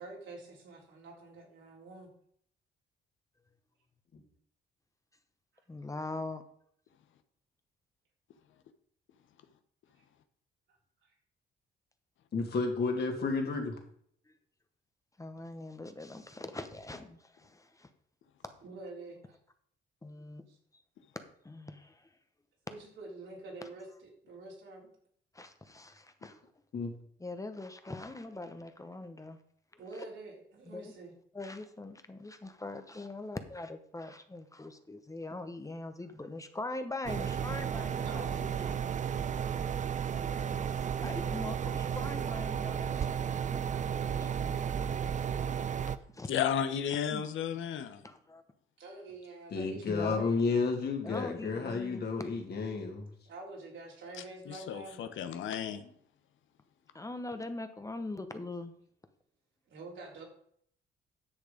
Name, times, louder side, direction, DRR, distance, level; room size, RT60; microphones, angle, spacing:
voice 1, 0.0-2.1 18.6-19.4 20.5-20.6 22.7-24.9 29.8-31.1 38.0-39.0 48.8-50.6 53.3-55.0 59.7-60.2, right 2 dB, 75° right, -1 dB, 3.7 m, -47 dB
voice 2, 5.7-6.4 14.3-14.4 15.2-17.9 20.0-20.4 20.7-20.8 21.4-22.1 25.3-26.4 27.2-29.4 29.9-30.1 30.7-30.9 31.3-38.6 40.0-44.3 46.1-46.3 47.1-47.3 48.0-48.4 49.9-50.3 51.0-52.3 56.9-58.7, left 2 dB, 15° left, 8 dB, 1.1 m, -42 dB
voice 3, 12.3-13.7 26.7-26.9 49.5-53.1, left 4 dB, 55° left, 2 dB, 2.7 m, -31 dB
sound 1, 37.1-46.0, right 8 dB, 40° right, 0.6 m, -33 dB
voice 4, 46.3-48.0 54.5-55.8, left 8 dB, 75° left, 9 dB, 1.1 m, -33 dB
10.0 x 6.5 x 5.1 m, 0.65 s
cardioid pair, 90°, 20 cm